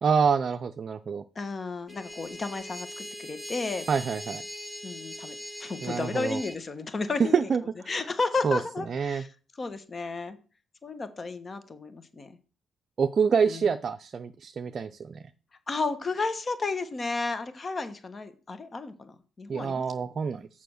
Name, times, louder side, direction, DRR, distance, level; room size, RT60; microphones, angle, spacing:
voice 1, 0.0-1.2 3.9-4.4 5.8-6.4 7.2-7.6 8.4-8.6 8.9-9.2 13.0-15.2 19.5-20.5, right 6 dB, 45° right, 7 dB, 0.5 m, -26 dB
voice 2, 1.3-3.9 4.8-5.3 5.6-7.5 7.9-9.3 9.6-10.4 10.8-12.4 13.5-13.7 15.7-19.8, left 3 dB, 35° left, 10 dB, 1.1 m, -33 dB
sound 1, 1.9-6.6, equal, 15° left, 1.9 m, -41 dB
6.9 x 5.7 x 6.4 m, 0.37 s
cardioid pair, 90°, 0 cm